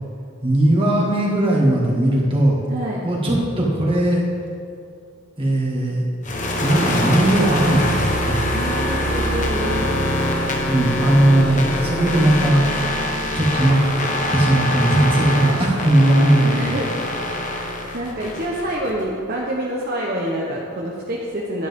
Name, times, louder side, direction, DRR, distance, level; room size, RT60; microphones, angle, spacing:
voice 1, 0.4-2.6 3.0-4.2 5.4-6.0 6.6-8.4 10.7-12.7 13.3-13.8 14.3-16.7, right 1 dB, 25° right, -4 dB, 2.0 m, -18 dB
voice 2, 2.7-3.0 8.5-10.1 16.4-17.3 17.9-21.7, right 1 dB, 45° right, -4 dB, 1.0 m, -27 dB
sound 1, 6.2-19.0, left 1 dB, 35° left, 1.2 m, -23 dB
10.5 x 10.5 x 3.7 m, 2.4 s
head